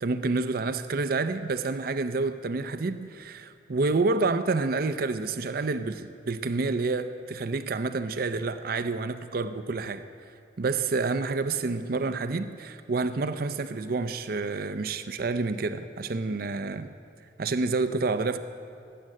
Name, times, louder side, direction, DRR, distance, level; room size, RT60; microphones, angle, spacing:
voice 1, 0.0-10.0 10.6-16.9 17.4-18.4, right 3 dB, 50° right, 0.5 m, -28 dB
18.5 x 7.8 x 8.5 m
head